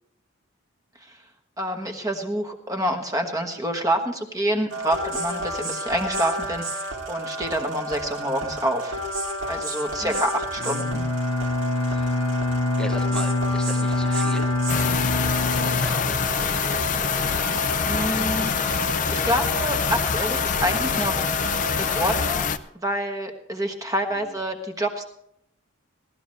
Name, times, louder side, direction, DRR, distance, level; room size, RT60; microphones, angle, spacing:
voice 1, 1.6-9.0 9.5-11.0 17.9-18.7 19.1-21.2 21.8-25.0, equal, 15° right, 5 dB, 1.2 m, -27 dB
sound 1, 4.7-22.3, right 1 dB, 70° right, 2.3 m, -32 dB
Bowed string instrument, 10.6-16.6, left 2 dB, 85° left, 0.7 m, -25 dB
voice 2, 11.8-12.2 12.8-14.5 15.4-16.2, equal, 5° left, 3 dB, 1.2 m, -38 dB
sound 2, 14.7-22.6, left 6 dB, 35° left, 0.5 m, -25 dB
18.0 x 13.0 x 3.2 m, 0.74 s
head